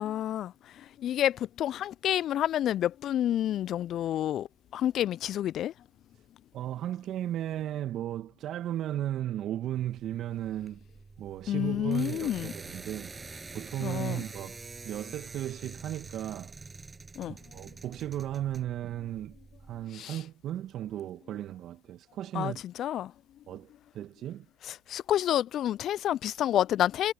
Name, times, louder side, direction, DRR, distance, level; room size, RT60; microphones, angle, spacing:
voice 1, 0.0-4.5 4.7-5.7 11.5-12.5 13.8-14.2 17.2-17.3 19.9-20.2 22.3-23.1 24.7-27.1, left 11 dB, 55° left, 0.5 m, -29 dB
voice 2, 6.5-10.8 11.2-13.2 13.5-16.6 17.3-19.4 19.7-22.6 23.5-24.5, right 12 dB, 55° right, 2.1 m, -35 dB
sound 1, 9.7-19.8, right 4 dB, 25° right, 7.4 m, -46 dB
hypercardioid pair, 60°, 0 cm